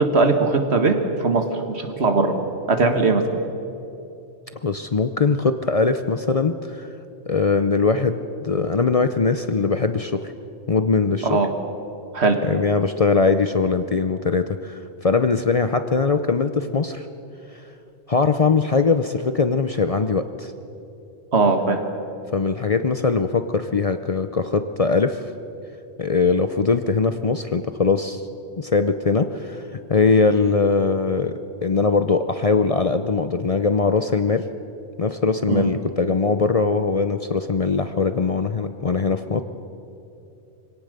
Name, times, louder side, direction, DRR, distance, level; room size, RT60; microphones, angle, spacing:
voice 1, 0.0-2.3 2.7-3.4 11.2-11.5 12.1-12.4 21.3-21.8 35.5-35.7, right 3 dB, 70° right, 5 dB, 2.0 m, -19 dB
voice 2, 4.6-6.9 7.3-10.3 10.7-11.4 12.4-17.1 18.1-20.5 22.3-25.2 26.0-28.2 28.6-31.3 31.6-34.5 35.0-39.4, left 4 dB, 40° left, 9 dB, 0.6 m, -21 dB
24.5 x 17.5 x 6.7 m, 2.8 s
omnidirectional pair, 1.1 m